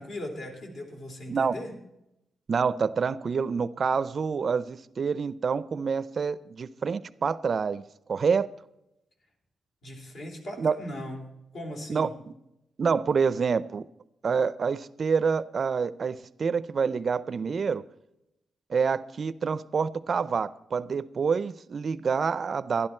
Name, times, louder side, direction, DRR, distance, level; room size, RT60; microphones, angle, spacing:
voice 1, 0.0-1.7 9.8-12.1, left 1 dB, 65° left, 2 dB, 3.1 m, -39 dB
voice 2, 2.5-7.8 8.1-8.5 10.6-10.8 11.9-12.1 12.8-13.8 14.2-17.8 18.7-22.9, right 5 dB, 45° right, 17 dB, 0.4 m, -27 dB
12.5 x 11.5 x 4.3 m, 0.88 s
cardioid pair, 105°, 0 cm